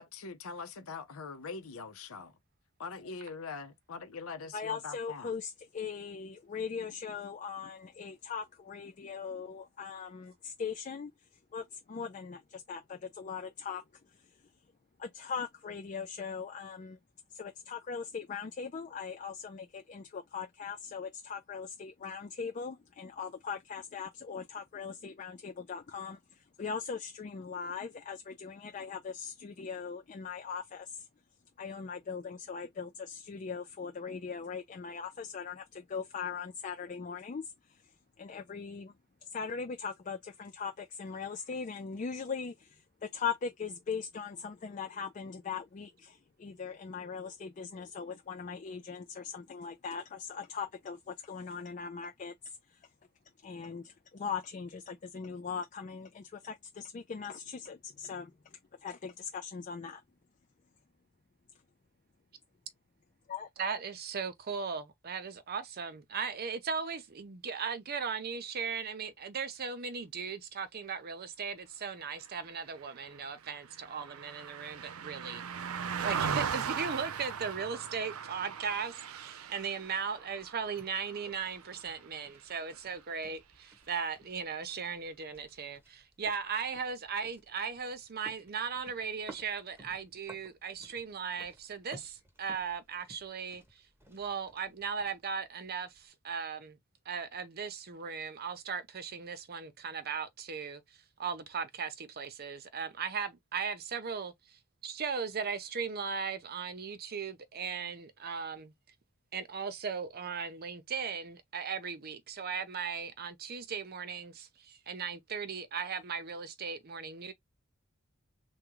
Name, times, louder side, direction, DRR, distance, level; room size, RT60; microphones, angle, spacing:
voice 1, 0.0-2.3 2.8-5.3, left 4 dB, 80° left, 0.7 m, -43 dB
voice 2, 4.5-11.1 11.5-14.4 15.0-17.0 17.3-31.1 31.6-37.8 38.2-38.9 39.2-52.8 53.4-60.0 63.3-63.5, left 6 dB, 35° left, 0.4 m, -40 dB
voice 3, 63.6-75.4 76.0-93.6 94.1-96.8 97.1-108.7 109.3-117.3, right 6 dB, 45° right, 0.6 m, -37 dB
Car passing by, 72.6-82.1 82.5-82.7, right 7 dB, 90° right, 0.5 m, -39 dB
sound 1, 79.1-96.1, right 1 dB, 10° right, 1.0 m, -58 dB
3.6 x 2.2 x 3.0 m
head